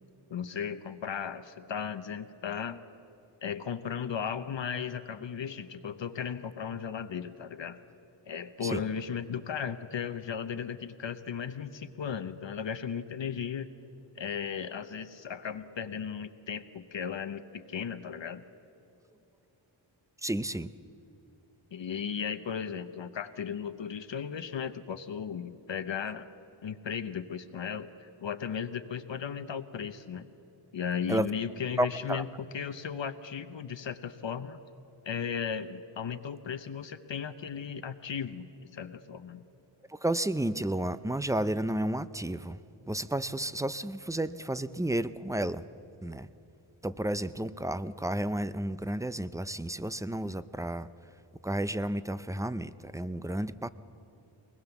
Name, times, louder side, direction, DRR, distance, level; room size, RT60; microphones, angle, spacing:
voice 1, 0.3-2.8 3.4-7.8 8.3-13.7 14.2-18.4 21.7-26.3 26.6-30.2 30.7-32.3 32.5-34.6 35.0-39.4, left 7 dB, 65° left, 9 dB, 0.9 m, -36 dB
voice 2, 20.2-20.7 31.1-31.3 31.8-32.2 39.9-42.6 42.8-45.6 46.0-46.3 46.8-50.9 51.4-53.7, right 1 dB, 5° right, 14 dB, 0.5 m, -32 dB
23.0 x 20.0 x 7.1 m, 2.8 s
wide cardioid pair, 105°, 49 cm